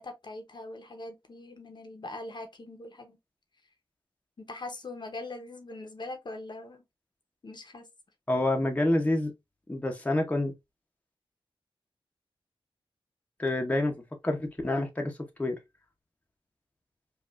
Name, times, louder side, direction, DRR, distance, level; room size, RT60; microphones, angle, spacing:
voice 1, 0.0-3.2 4.4-6.8 7.4-7.9, left 2 dB, 50° left, 0.8 m, -42 dB
voice 2, 8.3-9.3 9.7-10.5 13.4-13.9 14.2-15.6, left 1 dB, 15° left, 0.8 m, -27 dB
5.2 x 2.4 x 2.4 m
wide cardioid pair, 130°, 10 cm